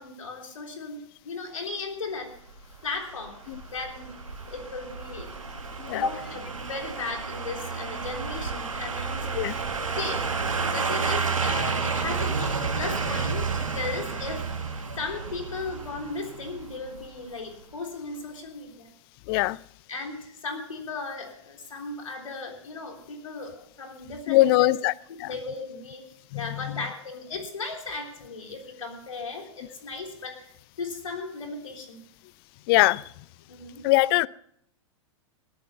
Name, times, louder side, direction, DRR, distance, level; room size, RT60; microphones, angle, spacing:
voice 1, 0.0-2.4 2.8-3.4 3.7-4.2 4.5-5.4 5.9-9.6 10.0-10.4 10.7-14.5 15.0-18.9 19.9-24.7 25.2-30.5 30.8-32.0 33.5-33.8, left 3 dB, 80° left, 3 dB, 3.4 m, -36 dB
sound 1, 2.5-17.4 17.7-17.8, right 5 dB, 90° right, 1.7 m, -31 dB
voice 2, 19.3-19.6 24.3-24.9 25.2-25.3 26.3-26.4 32.7-33.0 33.8-34.3, left 19 dB, 45° left, 22 dB, 0.5 m, -21 dB
20.0 x 9.0 x 5.7 m, 0.69 s
hypercardioid pair, 100°, 17 cm